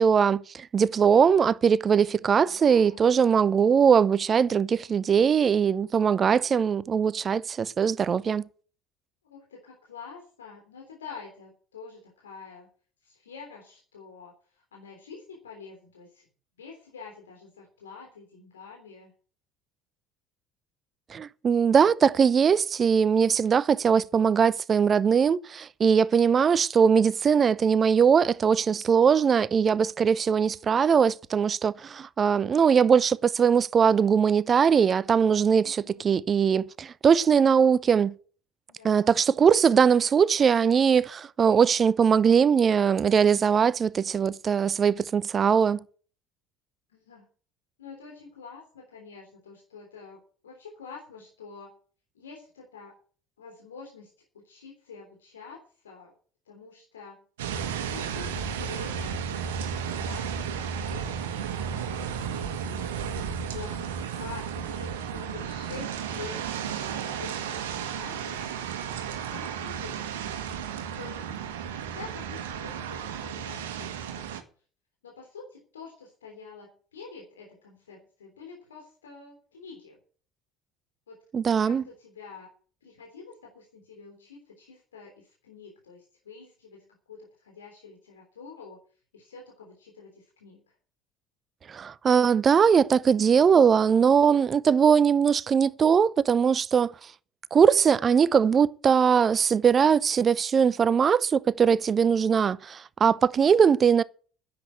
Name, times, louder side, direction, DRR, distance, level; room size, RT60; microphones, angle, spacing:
voice 1, 0.0-8.5 21.1-38.1 38.8-45.8 81.3-81.8 91.7-96.9 97.5-104.0, right 7 dB, 35° right, 0.7 m, -21 dB
voice 2, 2.3-3.1 9.2-12.7 13.0-16.2 16.6-19.1 35.6-36.1 38.7-39.2 46.9-47.3 47.8-51.7 52.1-52.9 53.4-56.1 56.5-57.2 57.5-62.8 63.5-66.6 66.9-68.5 69.3-70.0 71.0-71.2 71.8-74.3 75.0-80.0 81.1-81.2 81.6-82.5 82.8-88.8 89.1-90.6 103.4-103.7, left 5 dB, 80° left, 3.3 m, -47 dB
sound 1, 57.4-74.4, right 7 dB, 75° right, 1.6 m, -33 dB
10.5 x 8.6 x 9.0 m
figure-of-eight pair, 60°, 0 cm